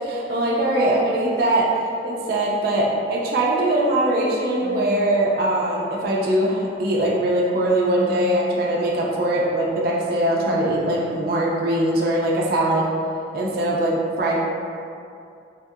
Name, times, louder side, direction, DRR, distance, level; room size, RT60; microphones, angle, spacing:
voice 1, 0.1-1.7 2.0-12.9 13.3-14.4, right 1 dB, 55° right, -3 dB, 0.3 m, -21 dB
sound 1, 4.6-5.2 7.7-8.7 10.3-11.3, left 2 dB, 15° right, 1.0 m, -36 dB
2.8 x 2.6 x 2.3 m, 2.5 s
head